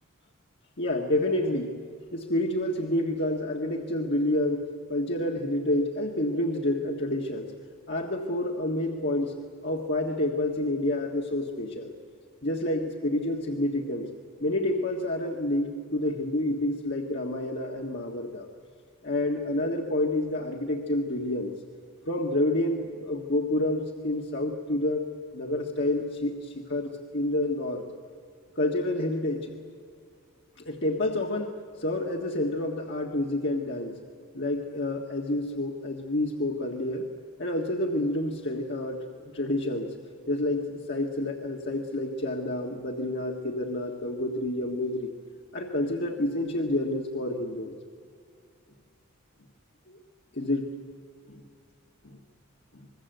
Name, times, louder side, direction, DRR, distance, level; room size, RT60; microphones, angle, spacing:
voice 1, 0.8-1.7 2.1-7.5 7.9-9.4 9.6-11.9 12.4-14.1 14.4-18.5 19.0-21.5 22.0-25.1 25.3-27.8 28.6-29.5 30.6-34.0 34.3-37.1 37.4-39.9 40.3-45.1 45.5-47.7 49.9-50.0 50.3-50.7 51.3-51.4 52.0-52.2 52.7-52.9, left 1 dB, 50° left, 0 dB, 1.7 m, -29 dB
26.0 x 21.5 x 8.0 m, 2.2 s
head